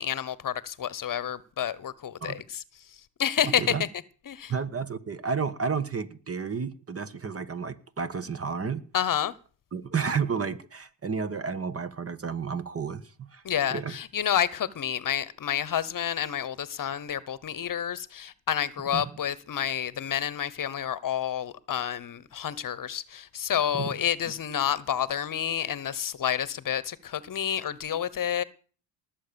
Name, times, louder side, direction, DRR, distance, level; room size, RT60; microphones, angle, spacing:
voice 1, 0.0-2.6 3.2-3.7 4.3-4.5 8.9-9.3 13.4-28.4, left 9 dB, 45° left, 1.1 m, -29 dB
voice 2, 3.4-3.8 4.5-8.8 9.7-13.4 13.7-14.0 18.9-19.0 23.7-23.9, right 5 dB, 30° right, 1.4 m, -31 dB
19.5 x 7.5 x 6.9 m
cardioid pair, 85°, 45 cm